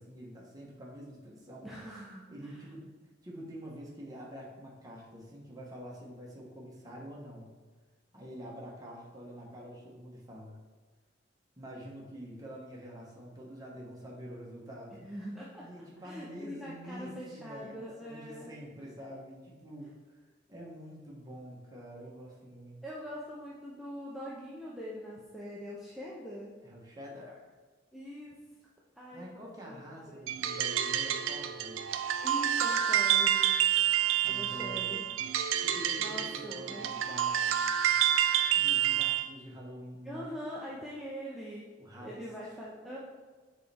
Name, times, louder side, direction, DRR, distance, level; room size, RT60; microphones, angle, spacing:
voice 1, 0.0-1.7 2.3-2.9 3.2-7.5 8.1-10.6 11.6-15.1 15.6-19.9 20.5-22.8 26.6-27.5 29.1-31.8 34.2-35.3 35.6-37.9 38.5-40.4 41.8-42.2, equal, 20° right, -3 dB, 1.2 m, -46 dB
voice 2, 1.6-2.6 14.9-15.7 16.0-18.5 22.8-26.5 27.9-28.4 29.0-30.3 32.2-33.7 34.2-35.0 36.0-37.0 40.0-41.7 42.0-43.0, equal, ahead, -6 dB, 0.6 m, -43 dB
sound 1, 30.3-39.3, right 10 dB, 80° right, 0.4 m, -28 dB
6.5 x 4.2 x 3.5 m, 1.4 s
head